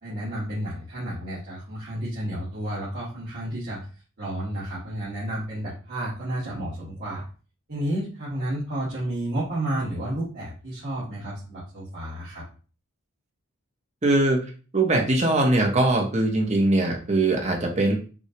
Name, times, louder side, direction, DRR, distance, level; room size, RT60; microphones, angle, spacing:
voice 1, 0.0-3.8 4.2-7.2 7.7-12.4, right 1 dB, 50° right, -10 dB, 1.5 m, -31 dB
voice 2, 14.0-14.4 14.7-18.0, right 2 dB, 30° right, 1 dB, 0.9 m, -21 dB
6.2 x 2.3 x 2.9 m, 0.36 s
head